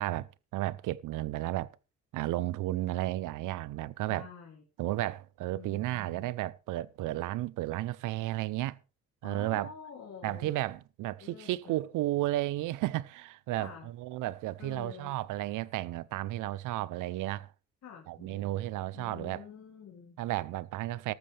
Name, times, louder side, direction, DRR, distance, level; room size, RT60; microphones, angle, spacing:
voice 1, 0.0-1.7 2.1-4.3 4.8-8.8 9.2-9.7 10.2-17.5 18.1-19.4 20.2-21.1, right 16 dB, 90° right, 0.7 m, -33 dB
voice 2, 4.1-4.6 5.5-6.3 9.2-10.6 11.2-11.8 13.6-13.9 14.6-15.1 17.8-20.2, left 7 dB, 60° left, 2.7 m, -48 dB
14.0 x 12.5 x 3.3 m
cardioid pair, 90°, 30 cm